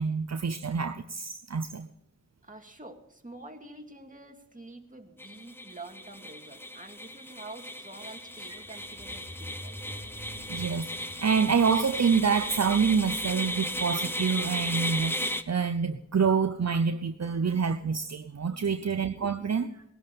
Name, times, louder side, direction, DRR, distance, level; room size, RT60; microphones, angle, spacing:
voice 1, 0.0-1.9 10.5-19.8, right 6 dB, 65° right, 8 dB, 0.7 m, -27 dB
voice 2, 2.4-10.0, right 2 dB, 25° right, 3 dB, 2.3 m, -47 dB
sound 1, 5.2-15.4, equal, 10° left, 1.0 m, -35 dB
sound 2, 8.2-16.5, equal, 40° left, 5.3 m, -49 dB
19.5 x 11.5 x 5.4 m, 0.75 s
wide cardioid pair, 40°, 29 cm